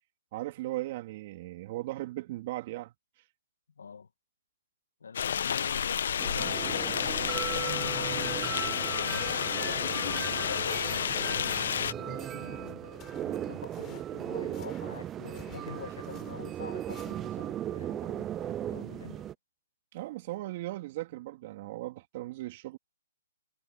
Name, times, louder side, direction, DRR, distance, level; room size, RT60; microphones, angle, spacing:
voice 1, 0.3-2.9 19.9-22.8, right 17 dB, 40° right, 3.4 m, -37 dB
voice 2, 3.8-4.1 5.0-6.6 7.0-8.7 9.1-19.3, left 6 dB, 85° left, 1.8 m, -45 dB
sound 1, 5.1-11.9, left 8 dB, 65° left, 0.9 m, -30 dB
sound 2, 6.2-19.3, right 11 dB, 20° right, 0.4 m, -37 dB
sound 3, 12.0-17.5, left 14 dB, 20° left, 4.3 m, -57 dB
hypercardioid pair, 150°, 0 cm